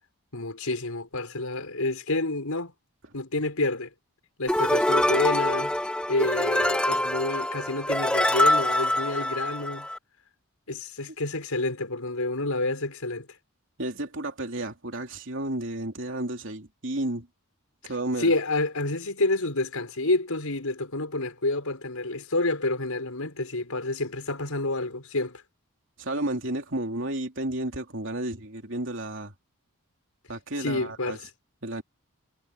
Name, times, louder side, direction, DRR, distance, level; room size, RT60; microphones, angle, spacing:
voice 1, 0.3-2.7 3.1-3.9 4.4-5.7 6.1-9.9 10.7-13.3 18.2-25.4 30.6-31.3, left 2 dB, 85° left, 5.2 m, -28 dB
sound 1, 4.5-10.0, left 1 dB, 5° left, 1.1 m, -25 dB
voice 2, 13.8-17.3 17.9-18.3 26.0-29.3 30.3-31.2 31.6-31.8, right 1 dB, 60° right, 3.4 m, -32 dB
head